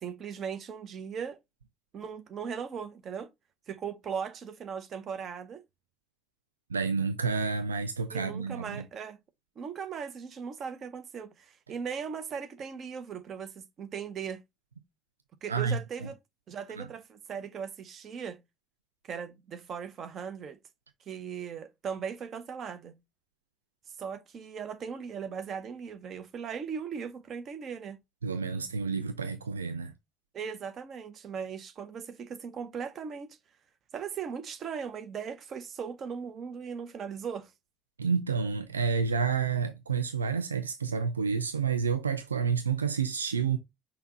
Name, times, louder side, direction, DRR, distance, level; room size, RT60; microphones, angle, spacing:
voice 1, 0.0-1.4 1.9-3.3 3.7-5.6 8.1-9.2 9.6-14.4 15.4-16.2 16.5-18.4 19.0-20.6 21.1-23.0 24.0-28.0 30.3-33.4 33.9-37.5, right 6 dB, 45° right, 0.7 m, -38 dB
voice 2, 6.7-8.8 15.5-16.1 16.8-16.9 28.2-29.9 38.0-43.6, right 5 dB, 85° right, 0.4 m, -29 dB
5.7 x 2.3 x 3.7 m
figure-of-eight pair, 50°, 0 cm